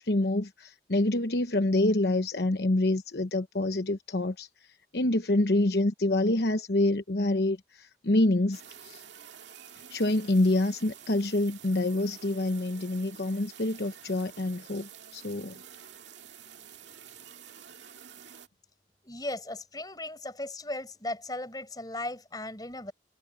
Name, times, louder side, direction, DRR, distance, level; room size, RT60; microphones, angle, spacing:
voice 1, 0.0-4.5 4.9-9.0 9.9-15.5, left 1 dB, 65° left, 1.0 m, -27 dB
sound 1, 8.5-18.5, right 8 dB, 90° right, 2.2 m, -49 dB
voice 2, 19.0-22.9, left 2 dB, 20° left, 4.9 m, -37 dB
head